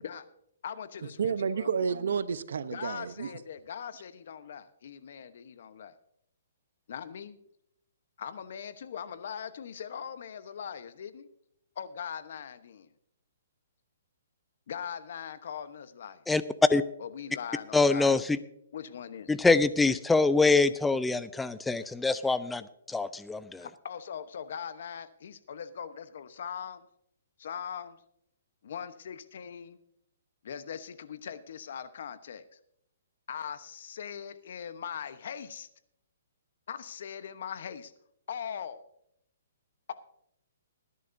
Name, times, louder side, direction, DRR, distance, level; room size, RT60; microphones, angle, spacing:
voice 1, 0.6-1.7 2.7-5.9 6.9-7.4 8.2-11.3 11.8-12.9 14.7-16.2 17.0-18.2 18.7-19.3 23.6-26.9 27.4-28.0 28.6-29.8 30.4-32.4 33.3-35.7 36.7-37.9 38.3-38.8, left 8 dB, 60° left, 1.0 m, -40 dB
voice 2, 1.2-3.4, right 6 dB, 75° right, 0.8 m, -30 dB
voice 3, 17.7-18.2 19.3-23.7, left 3 dB, 5° left, 0.4 m, -25 dB
20.0 x 11.0 x 2.7 m
hypercardioid pair, 155°, 0 cm